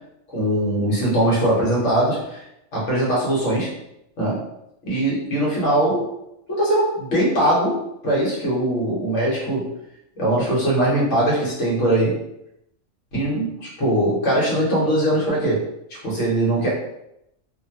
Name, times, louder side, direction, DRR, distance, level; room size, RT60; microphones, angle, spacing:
voice 1, 0.3-2.4 2.7-3.7 4.2-4.4 4.9-6.0 6.5-7.8 8.0-9.7 10.2-12.1 13.1-15.6 16.0-16.7, right 1 dB, 60° left, -6 dB, 1.5 m, -21 dB
3.0 x 2.2 x 2.8 m, 0.81 s
omnidirectional pair, 1.5 m